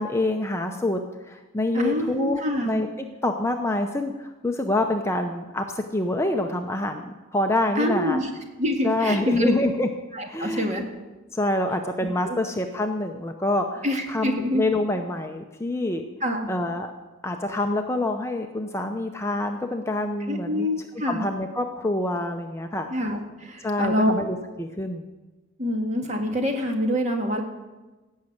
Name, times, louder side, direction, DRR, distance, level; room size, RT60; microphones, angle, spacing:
voice 1, 0.0-2.9 3.2-8.2 8.8-9.9 10.3-10.8 11.3-16.1 16.5-16.9 17.2-20.7 21.1-22.9 23.6-25.1, left 1 dB, 15° left, 4 dB, 0.6 m, -26 dB
voice 2, 1.7-2.8 7.8-8.3 8.6-9.5 10.1-10.8 12.2-12.4 13.8-14.6 16.2-16.5 20.3-21.2 22.9-24.2 25.6-27.4, equal, 35° right, 2 dB, 1.9 m, -26 dB
16.5 x 6.5 x 8.6 m, 1.2 s
head